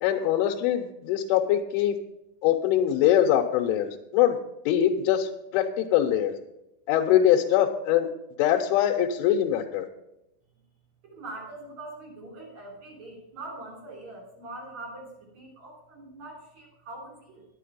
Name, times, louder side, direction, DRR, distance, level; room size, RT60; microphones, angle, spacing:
voice 1, 0.0-2.0 2.4-4.4 4.7-6.3 6.9-8.1 8.4-9.9, left 10 dB, 90° left, 2 dB, 3.2 m, -23 dB
voice 2, 11.0-17.5, right 2 dB, 40° right, -3 dB, 4.1 m, -43 dB
10.0 x 8.8 x 5.5 m, 0.90 s
omnidirectional pair, 5.6 m